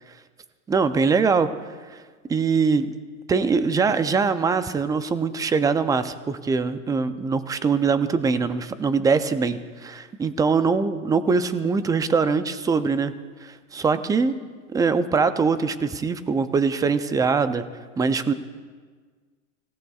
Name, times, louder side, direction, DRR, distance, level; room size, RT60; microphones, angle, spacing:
voice 1, 0.7-1.5 1.9-2.0 2.3-2.9 3.3-13.1 13.4-14.3 14.7-17.6 18.0-18.3, right 5 dB, 10° right, 12 dB, 0.4 m, -22 dB
25.5 x 17.0 x 2.4 m, 1.5 s
supercardioid pair, 125°, 39 cm